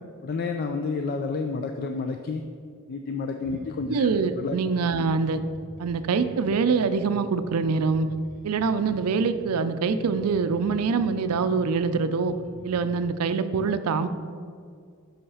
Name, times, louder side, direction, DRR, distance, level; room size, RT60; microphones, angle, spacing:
voice 1, 0.2-2.4 2.9-4.1 4.4-4.6 4.9-5.0, left 4 dB, 45° left, 5 dB, 0.4 m, -30 dB
Bass guitar, 3.4-13.0, right 1 dB, 35° right, 0.8 m, -46 dB
voice 2, 3.9-5.4 5.8-8.1 8.4-12.4 12.6-14.1, right 5 dB, 75° right, 11 dB, 0.4 m, -24 dB
5.7 x 5.5 x 5.5 m, 2.2 s
head